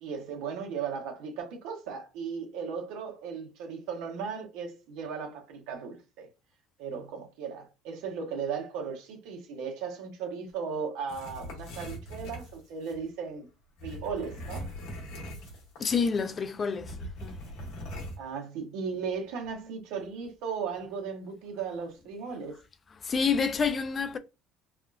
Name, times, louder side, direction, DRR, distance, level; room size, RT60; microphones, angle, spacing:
voice 1, 0.0-6.3 6.8-13.5 13.8-14.7 18.2-22.6, right 6 dB, 75° right, 0.9 m, -36 dB
sound 1, 11.1-13.0 13.8-15.9 16.2-16.3 16.8-18.2, equal, 80° left, 1.3 m, -41 dB
voice 2, 15.8-17.4 22.5-22.6 22.9-24.2, left 5 dB, 30° left, 0.4 m, -29 dB
3.4 x 2.3 x 2.4 m
supercardioid pair, 105°, 0 cm